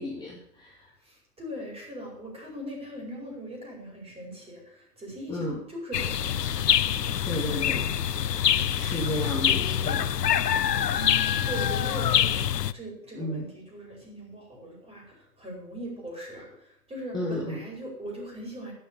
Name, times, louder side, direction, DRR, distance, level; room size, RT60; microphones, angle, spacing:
voice 1, 0.0-0.9 5.3-5.6 7.2-8.0 8.4-10.1 13.2-13.4 17.1-17.6, left 1 dB, 10° left, -4 dB, 2.3 m, -33 dB
voice 2, 1.0-6.7 10.9-18.7, equal, 10° right, -1 dB, 5.0 m, -40 dB
sound 1, 5.9-12.7, left 9 dB, 90° left, 0.6 m, -25 dB
11.5 x 7.9 x 6.9 m, 0.74 s
figure-of-eight pair, 110°, 47 cm